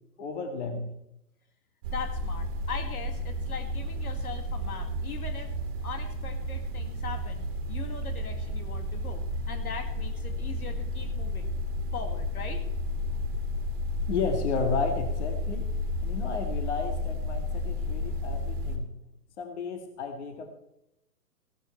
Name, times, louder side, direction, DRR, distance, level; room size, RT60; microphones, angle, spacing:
voice 1, 0.2-0.9 14.1-15.7 16.0-18.9 19.4-20.6, left 4 dB, 45° left, 5 dB, 1.8 m, -33 dB
sound 1, 1.8-18.8, left 1 dB, 30° right, 2.0 m, -32 dB
voice 2, 1.9-5.5 5.8-11.6 11.9-12.6, left 5 dB, 65° left, 7 dB, 2.1 m, -40 dB
16.0 x 13.5 x 3.2 m, 0.84 s
figure-of-eight pair, 135°, 47 cm